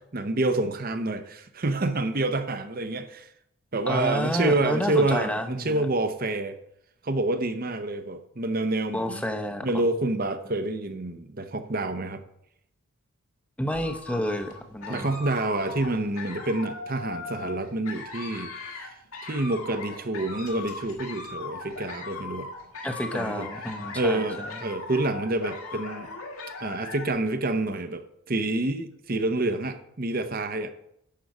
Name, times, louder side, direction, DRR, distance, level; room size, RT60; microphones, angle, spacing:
voice 1, 0.1-3.3 3.7-6.6 7.0-9.2 9.6-12.2 14.9-18.9 19.2-22.5 23.1-23.5 23.9-26.1 26.6-30.7, right 2 dB, 40° right, 0.7 m, -28 dB
voice 2, 3.9-5.9 8.9-9.7 13.6-15.1 22.8-24.2, left 1 dB, 5° left, 0.7 m, -30 dB
sound 1, 13.7-27.1, left 3 dB, 75° left, 1.8 m, -39 dB
10.5 x 6.8 x 4.9 m
head